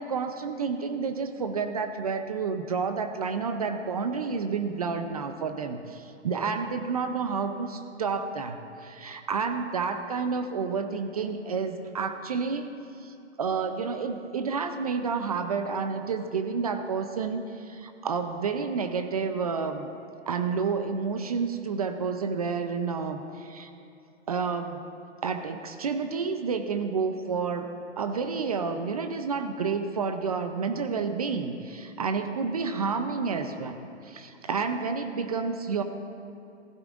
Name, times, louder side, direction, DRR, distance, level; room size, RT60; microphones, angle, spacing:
voice 1, 0.0-12.7 13.0-19.9 20.3-23.7 24.3-24.8 25.2-35.8, right 5 dB, 35° right, 7 dB, 0.5 m, -30 dB
16.5 x 15.5 x 2.5 m, 2.6 s
hypercardioid pair, 160°, 35 cm